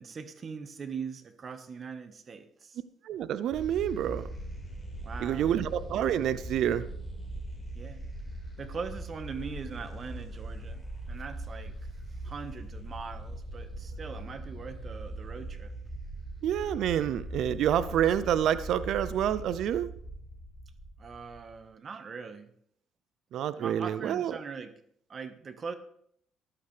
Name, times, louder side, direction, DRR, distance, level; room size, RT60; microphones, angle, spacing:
voice 1, 0.0-2.8 5.0-5.7 7.7-8.1 8.6-11.8 12.2-15.7 21.0-22.5 23.6-24.7 25.1-25.7, right 5 dB, 45° right, 10 dB, 1.3 m, -41 dB
voice 2, 3.0-4.3 5.2-6.8 16.4-19.9 23.3-24.3, right 10 dB, 70° right, 15 dB, 0.5 m, -28 dB
sound 1, 3.5-21.6, right 1 dB, 5° left, 4.6 m, -41 dB
14.5 x 11.5 x 3.4 m, 0.68 s
supercardioid pair, 75°, 0 cm